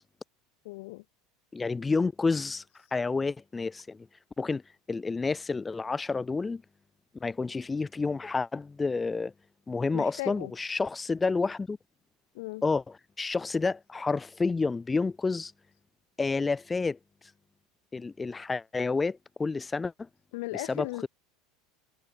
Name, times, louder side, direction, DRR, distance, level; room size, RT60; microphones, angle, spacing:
voice 1, 0.6-1.0 9.9-10.5 12.3-12.6 20.3-21.1, left 23 dB, 65° left, 7.5 m, -36 dB
voice 2, 1.5-2.6 2.9-4.1 4.4-4.6 4.9-6.6 7.2-9.3 9.7-11.8 12.6-15.5 16.2-17.0 17.9-20.1 20.5-21.1, left 4 dB, 10° left, 7.3 m, -29 dB
supercardioid pair, 175°, 0 cm